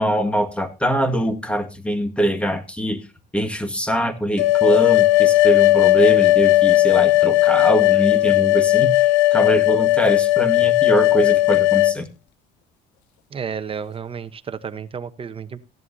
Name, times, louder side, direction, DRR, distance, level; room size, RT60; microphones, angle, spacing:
voice 1, 0.0-3.0 3.3-12.1, equal, 5° left, 8 dB, 1.7 m, -23 dB
sound 1, 4.4-12.0, left 17 dB, 85° left, 0.5 m, -16 dB
voice 2, 13.3-15.6, right 6 dB, 30° right, 11 dB, 0.9 m, -32 dB
15.5 x 10.5 x 2.7 m, 0.28 s
cardioid pair, 110°, 18 cm